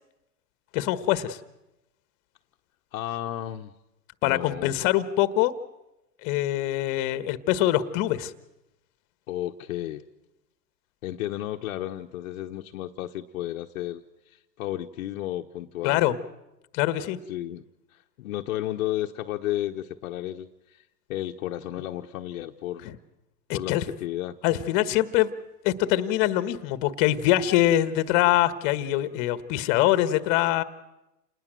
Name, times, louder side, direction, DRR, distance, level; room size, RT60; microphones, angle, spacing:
voice 1, 0.7-1.4 4.2-5.5 6.2-8.3 15.8-16.1 16.7-17.2 22.8-23.0 23.5-23.8 24.4-25.3 25.6-30.6, left 14 dB, 35° left, 13 dB, 1.4 m, -23 dB
voice 2, 2.9-3.7 4.2-4.8 9.3-10.0 11.0-16.1 17.3-17.6 17.9-20.8 21.1-22.9 23.5-24.4, left 13 dB, 55° left, 3 dB, 1.1 m, -33 dB
28.0 x 19.5 x 7.6 m, 0.93 s
hypercardioid pair, 135°, 49 cm